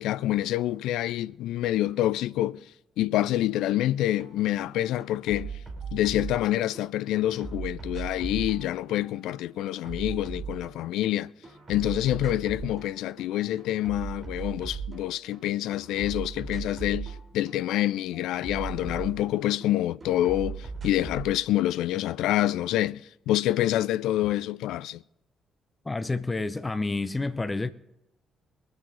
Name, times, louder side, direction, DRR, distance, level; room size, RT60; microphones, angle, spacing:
voice 1, 0.0-2.7 3.0-5.6 5.9-11.3 11.7-25.0, left 14 dB, 60° left, 0.3 m, -27 dB
sound 1, 4.2-4.3 4.6-6.8 7.1-11.1 11.4-12.9 13.2-15.4 15.7-19.7 20.0-21.3, right 5 dB, 35° right, 3.0 m, -38 dB
voice 2, 25.8-27.7, left 3 dB, 20° left, 0.7 m, -29 dB
22.5 x 7.8 x 3.9 m
figure-of-eight pair, 40°, 0 cm